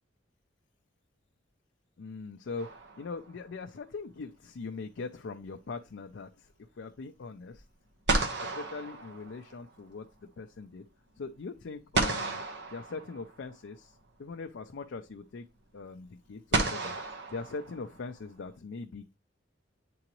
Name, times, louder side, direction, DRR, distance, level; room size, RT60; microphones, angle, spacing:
voice 1, 2.0-2.7 3.0-7.6 8.4-10.1 10.4-10.8 11.2-12.4 12.7-15.5 15.7-17.0 17.3-19.1, left 4 dB, 65° left, 5 dB, 0.4 m, -41 dB
sound 1, 2.6-3.5 7.5-7.6 8.1-9.8 11.9-13.5 14.9-15.0 16.5-18.2, right 3 dB, 65° right, 1.0 m, -32 dB
8.5 x 3.8 x 3.0 m, 0.28 s
head